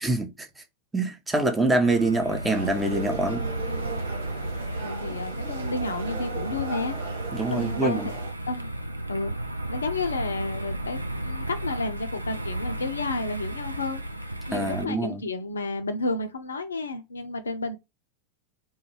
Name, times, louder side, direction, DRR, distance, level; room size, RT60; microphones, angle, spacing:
voice 1, 0.0-0.5 0.9-3.5 7.3-8.1 14.5-15.2, right 2 dB, 10° right, 0.5 m, -25 dB
sound 1, 1.8-14.8, right 1 dB, 85° right, 0.3 m, -33 dB
sound 2, 2.5-8.3, right 5 dB, 65° right, 0.7 m, -38 dB
voice 2, 4.8-7.0 7.5-8.1 8.5-8.7 9.1-9.4 9.7-17.8, left 3 dB, 70° left, 0.4 m, -31 dB
2.2 x 2.1 x 3.0 m
figure-of-eight pair, 90°, 0 cm